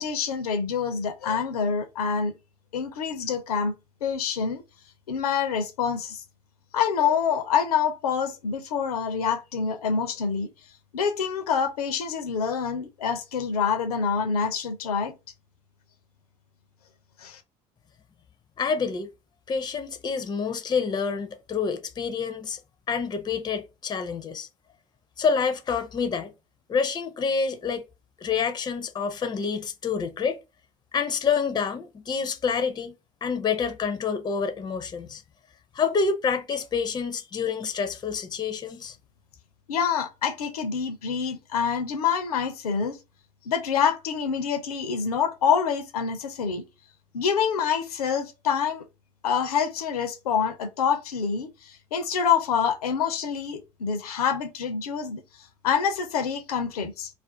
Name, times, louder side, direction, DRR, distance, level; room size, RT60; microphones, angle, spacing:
voice 1, 0.0-2.4 2.7-3.7 4.0-4.6 5.1-6.2 6.7-10.5 10.9-15.1 17.2-17.4 39.7-43.0 43.5-46.6 47.1-48.8 49.2-55.2 55.6-57.1, left 6 dB, 75° left, 0.5 m, -26 dB
voice 2, 18.6-19.1 19.5-22.6 22.9-24.5 25.2-26.3 26.7-27.8 28.2-30.4 30.9-32.9 33.2-35.2 35.7-39.0, left 5 dB, 20° left, 0.5 m, -27 dB
2.4 x 2.2 x 3.6 m
figure-of-eight pair, 65°, 19 cm